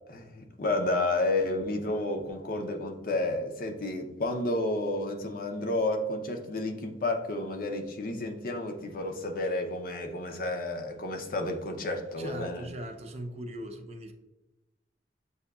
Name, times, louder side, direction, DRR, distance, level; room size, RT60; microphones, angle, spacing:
voice 1, 0.1-12.7, left 2 dB, 50° left, 4 dB, 0.6 m, -31 dB
voice 2, 12.2-14.1, right 1 dB, 35° right, 4 dB, 0.6 m, -39 dB
7.7 x 2.8 x 2.3 m, 1.0 s
head